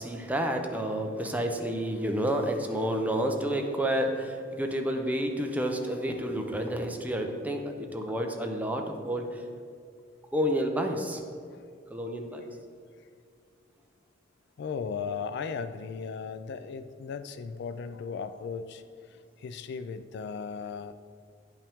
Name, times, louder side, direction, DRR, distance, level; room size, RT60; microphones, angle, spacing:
voice 1, 0.0-9.4 10.3-11.2 11.9-12.4, equal, 10° right, 3 dB, 0.6 m, -30 dB
voice 2, 5.7-6.2 11.5-11.7 13.0-13.1 14.6-20.9, left 5 dB, 60° left, 11 dB, 0.3 m, -37 dB
10.0 x 5.6 x 3.5 m, 2.3 s
head